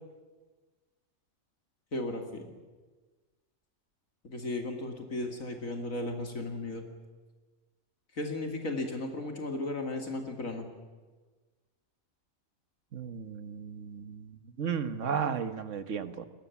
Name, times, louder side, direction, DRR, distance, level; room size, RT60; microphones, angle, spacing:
voice 1, 1.9-2.5 4.2-6.9 8.2-10.7, left 2 dB, 75° left, 4 dB, 2.9 m, -35 dB
voice 2, 12.9-16.3, right 7 dB, 65° right, 11 dB, 1.6 m, -34 dB
29.0 x 22.5 x 7.2 m, 1.3 s
omnidirectional pair, 1.4 m